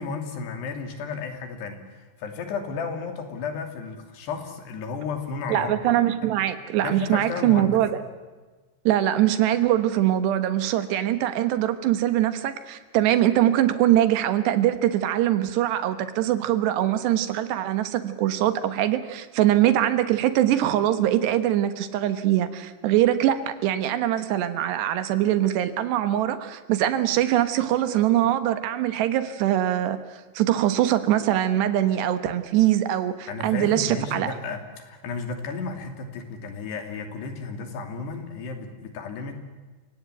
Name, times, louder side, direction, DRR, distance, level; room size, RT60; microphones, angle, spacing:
voice 1, 0.0-5.8 6.2-6.3 6.8-7.8 33.3-39.3, left 4 dB, 80° left, 6 dB, 4.9 m, -33 dB
voice 2, 5.5-8.0 8.9-30.0 30.4-34.3, right 12 dB, 85° right, 11 dB, 3.4 m, -22 dB
29.0 x 17.5 x 9.2 m, 1.3 s
omnidirectional pair, 4.8 m